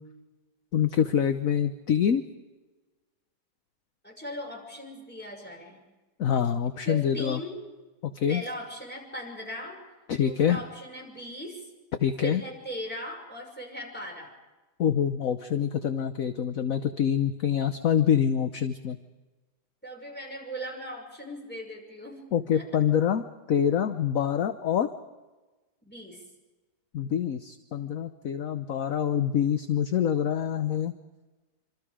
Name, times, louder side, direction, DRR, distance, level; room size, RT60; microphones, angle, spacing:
voice 1, 0.7-2.2 6.2-7.4 8.0-8.4 10.1-10.6 12.0-12.4 14.8-19.0 22.3-24.9 26.9-30.9, left 8 dB, 60° left, 9 dB, 1.3 m, -26 dB
voice 2, 4.0-5.8 6.9-7.6 8.3-9.8 10.2-11.7 12.2-14.3 19.8-22.2 22.5-22.8 25.8-26.2, equal, 5° left, 0 dB, 5.9 m, -39 dB
26.5 x 26.0 x 5.0 m, 1.2 s
omnidirectional pair, 1.8 m